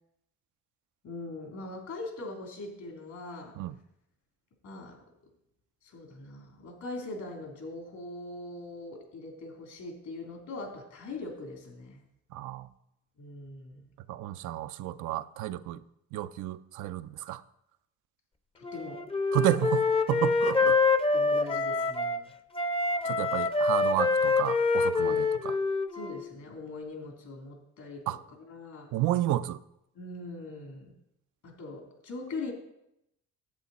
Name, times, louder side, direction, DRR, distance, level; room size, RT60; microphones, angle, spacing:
voice 1, 1.0-3.6 4.6-5.0 5.8-12.0 13.2-13.9 18.5-19.0 20.5-20.7 21.1-22.3 25.0-25.3 25.9-28.9 29.9-30.9 31.4-32.5, left 2 dB, 70° left, 3.1 m, -41 dB
voice 2, 12.3-12.7 14.1-15.8 16.1-17.4 19.3-20.8 23.0-25.6 28.1-28.2 28.9-29.6, right 14 dB, 85° right, 0.5 m, -31 dB
Wind instrument woodwind instrument, 18.6-22.2 22.5-26.3, left 3 dB, 20° left, 0.6 m, -26 dB
10.5 x 8.4 x 4.2 m
cardioid pair, 90°, 30 cm